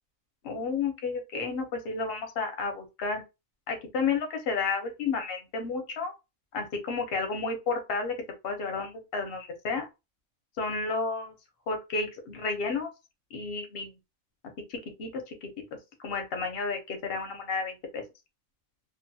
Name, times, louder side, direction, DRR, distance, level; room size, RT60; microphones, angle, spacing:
voice 1, 0.4-3.2 3.7-6.1 6.5-8.2 8.4-9.9 10.6-11.3 11.7-12.9 13.3-13.9 14.7-15.5 16.0-18.0, left 4 dB, 55° left, 5 dB, 0.8 m, -31 dB
2.7 x 2.3 x 2.6 m, 0.25 s
omnidirectional pair, 1.4 m